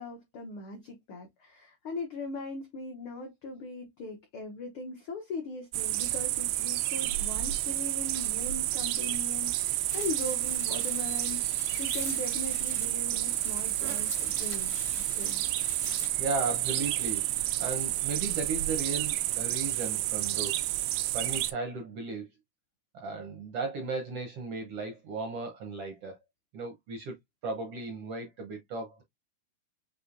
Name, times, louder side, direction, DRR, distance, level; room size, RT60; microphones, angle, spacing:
voice 1, 0.0-15.4, left 3 dB, 80° left, 1.2 m, -40 dB
sound 1, 5.7-21.5, right 16 dB, 90° right, 2.1 m, -30 dB
sound 2, 9.9-16.1, left 5 dB, 60° left, 1.0 m, -43 dB
voice 2, 15.9-20.6 21.1-22.3 22.9-26.2 26.5-27.2 27.4-29.0, right 3 dB, 75° right, 1.4 m, -36 dB
6.6 x 2.6 x 2.5 m
omnidirectional pair, 3.7 m